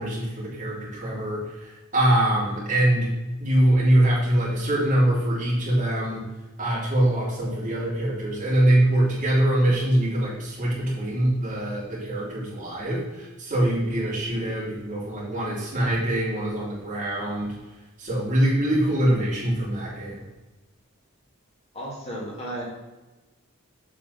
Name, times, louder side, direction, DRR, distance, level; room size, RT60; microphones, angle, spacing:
voice 1, 0.0-3.1 3.4-6.2 6.6-17.5 18.0-20.2, right 1 dB, 40° right, -6 dB, 3.2 m, -23 dB
voice 2, 21.7-22.6, right 1 dB, 30° left, -4 dB, 2.3 m, -33 dB
7.4 x 7.4 x 4.2 m, 1.1 s
head